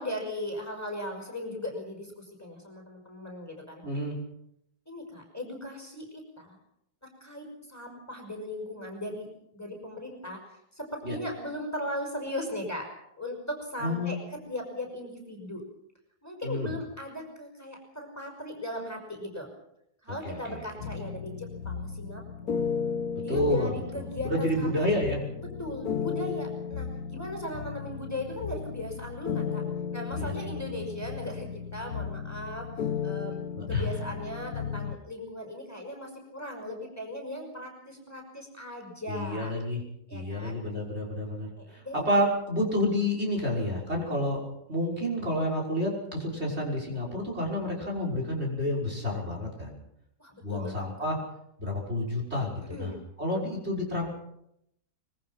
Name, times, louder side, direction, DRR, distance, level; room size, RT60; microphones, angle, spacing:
voice 1, 0.0-3.8 4.9-6.1 6.4-6.6 7.0-12.9 13.2-15.6 16.2-19.5 20.0-22.6 23.2-25.0 25.6-29.6 29.9-33.4 33.7-39.5 40.1-40.6 41.6-42.2 50.2-50.8 52.7-53.0, left 1 dB, 10° left, 2 dB, 5.4 m, -38 dB
voice 2, 3.8-4.2 11.0-11.2 13.8-14.2 16.4-16.7 20.2-20.6 23.3-23.7 24.2-25.2 30.2-30.8 33.6-33.9 39.1-39.8 40.1-49.8 50.4-51.2 51.6-54.1, left 1 dB, 40° right, -1 dB, 6.3 m, -30 dB
sound 1, 20.8-35.0, left 6 dB, 65° left, 1.6 m, -35 dB
25.0 x 22.5 x 5.8 m, 0.77 s
omnidirectional pair, 1.7 m